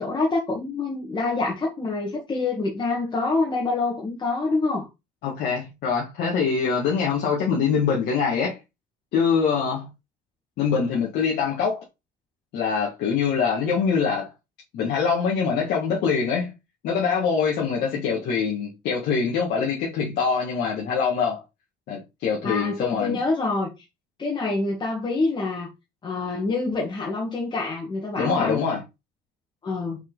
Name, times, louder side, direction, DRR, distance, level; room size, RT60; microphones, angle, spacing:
voice 1, 0.0-4.9 22.4-23.7 24.2-25.7 26.0-28.6 29.6-30.0, left 3 dB, 25° left, 1.8 m, -26 dB
voice 2, 5.2-8.6 9.1-9.9 10.6-11.8 12.5-14.3 14.7-16.5 16.8-21.4 21.9-23.2 28.2-28.8, left 6 dB, 65° left, 2.0 m, -24 dB
5.7 x 4.4 x 4.0 m
cardioid pair, 140°, 19 cm